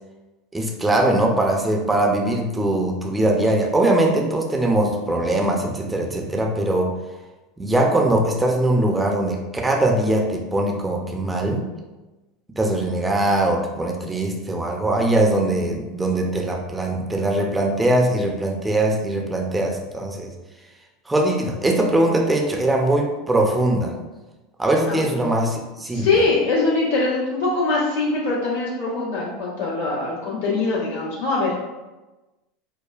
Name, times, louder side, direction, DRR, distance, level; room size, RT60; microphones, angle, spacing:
voice 1, 0.5-6.9 7.6-11.7 12.6-20.3 21.1-23.9 24.6-26.1, right 1 dB, 10° right, 1 dB, 0.6 m, -21 dB
voice 2, 25.9-31.5, left 3 dB, 75° left, -7 dB, 1.4 m, -22 dB
4.9 x 2.2 x 2.4 m, 1.1 s
hypercardioid pair, 80°, 0 cm